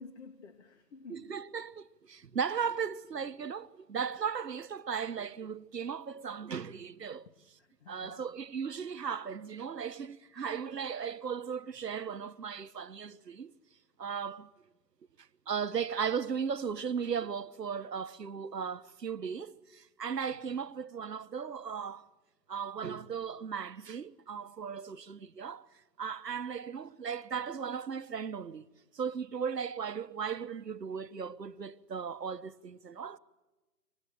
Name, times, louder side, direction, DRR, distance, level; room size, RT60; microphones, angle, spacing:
voice 1, 0.0-1.3 7.6-8.3 20.3-20.6, left 4 dB, 45° left, 2.3 m, -51 dB
voice 2, 1.1-7.3 7.9-13.5 14.0-14.5 15.5-22.0 22.5-25.7 26.0-28.7 28.9-33.2, right 6 dB, 90° right, 1.4 m, -36 dB
27.5 x 25.5 x 6.8 m
hypercardioid pair, 155°, 48 cm